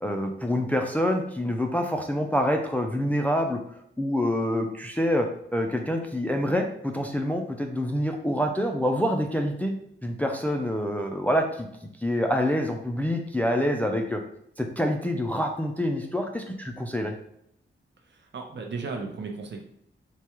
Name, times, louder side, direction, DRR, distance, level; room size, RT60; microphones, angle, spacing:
voice 1, 0.0-3.6 4.0-5.3 5.5-9.7 10.0-14.2 14.6-17.1, equal, 10° left, 3 dB, 0.3 m, -26 dB
voice 2, 18.0-19.6, right 4 dB, 60° right, 3 dB, 0.6 m, -35 dB
4.6 x 2.2 x 2.9 m, 0.72 s
wide cardioid pair, 120°, 21 cm